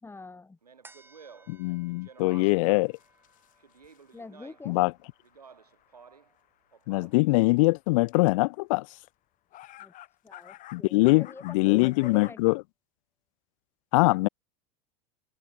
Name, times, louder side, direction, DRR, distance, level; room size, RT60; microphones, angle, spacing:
voice 1, 0.0-0.6 4.1-4.8 9.8-9.9 10.2-12.6, left 3 dB, 10° left, 4.8 m, -45 dB
Speech, 0.6-2.8 3.6-4.8 5.2-6.3 6.7-7.4, right 6 dB, 90° right, 3.0 m, -53 dB
sound 1, 0.8-7.6 8.0-8.1, right 3 dB, 10° right, 6.0 m, -61 dB
voice 2, 1.5-2.9 4.7-4.9 6.9-8.9 10.7-12.6 13.9-14.3, left 24 dB, 60° left, 0.4 m, -23 dB
sound 2, 2.4-7.5 8.1-8.3 9.1-9.2 9.5-12.3, left 15 dB, 45° left, 3.0 m, -51 dB
hypercardioid pair, 85°, 19 cm